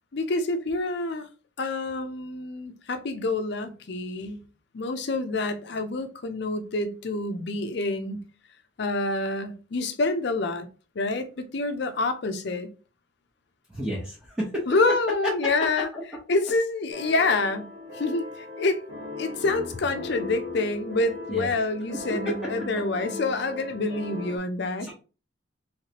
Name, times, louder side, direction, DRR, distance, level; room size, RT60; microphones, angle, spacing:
voice 1, 0.1-1.3 1.6-4.4 4.7-8.3 8.8-10.7 11.0-12.7 14.7-15.9 16.3-18.8 19.2-24.9, left 3 dB, 55° left, 0.5 m, -27 dB
voice 2, 13.7-14.7 15.9-16.0 21.3-21.5 22.1-22.3 24.8-24.9, equal, 5° right, 0.8 m, -32 dB
sound 1, 16.9-24.4, left 2 dB, 60° right, 1.2 m, -37 dB
3.2 x 3.1 x 2.9 m
head